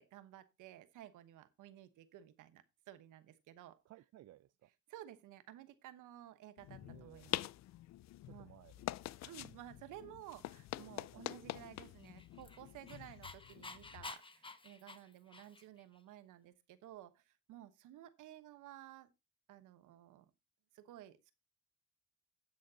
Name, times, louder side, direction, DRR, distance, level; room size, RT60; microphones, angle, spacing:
voice 1, 0.0-3.8 4.9-7.4 8.3-8.5 9.2-19.1 19.5-20.3 20.7-21.3, right 12 dB, 90° right, 1.1 m, -55 dB
voice 2, 3.9-4.7 6.8-7.3 8.2-8.9 10.8-11.3, right 14 dB, 60° right, 0.4 m, -60 dB
sound 1, 6.6-14.1, left 15 dB, 65° left, 0.4 m, -46 dB
Dog, 12.0-15.8, left 3 dB, 15° left, 0.9 m, -51 dB
16.5 x 6.5 x 2.8 m
cardioid pair, 90°, 30 cm